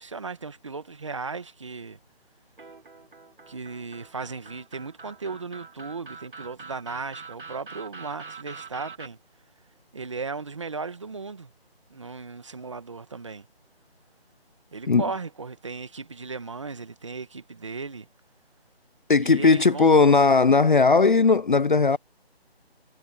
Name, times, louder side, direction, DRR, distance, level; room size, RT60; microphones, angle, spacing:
voice 1, 0.0-2.0 3.5-9.2 9.9-11.5 11.9-13.5 14.7-18.1 19.2-20.1, right 4 dB, 30° right, 1.6 m, -36 dB
sound 1, 2.6-9.1, right 5 dB, 55° right, 2.1 m, -44 dB
voice 2, 19.1-22.0, left 4 dB, 50° left, 0.5 m, -18 dB
figure-of-eight pair, 175°, 31 cm